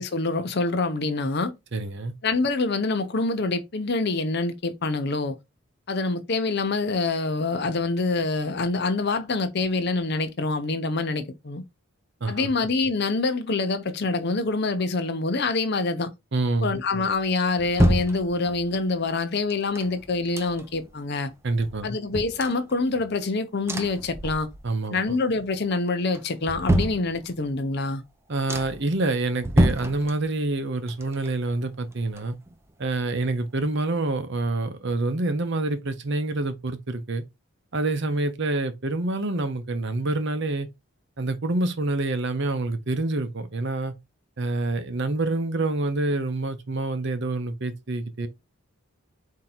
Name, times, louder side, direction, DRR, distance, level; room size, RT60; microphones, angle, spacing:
voice 1, 0.0-1.5 2.2-5.4 5.9-11.6 12.3-16.1 16.6-21.3 21.8-24.5 24.9-28.0, left 3 dB, 50° left, 0.6 m, -26 dB
voice 2, 1.7-2.1 12.2-12.5 16.3-16.7 21.4-21.9 24.6-25.2 28.3-32.4 32.8-37.2 37.7-40.7 41.2-43.9 44.4-48.3, right 2 dB, 55° right, 0.7 m, -27 dB
sound 1, 17.0-18.8 19.5-20.9 21.3-21.4 21.6-23.2 23.7-24.8 25.2-25.7 26.1-27.6 28.0-28.1 28.5-29.0 29.4-30.6 30.9-32.7 33.0-33.1, right 1 dB, 10° right, 0.4 m, -28 dB
4.4 x 2.8 x 3.9 m
head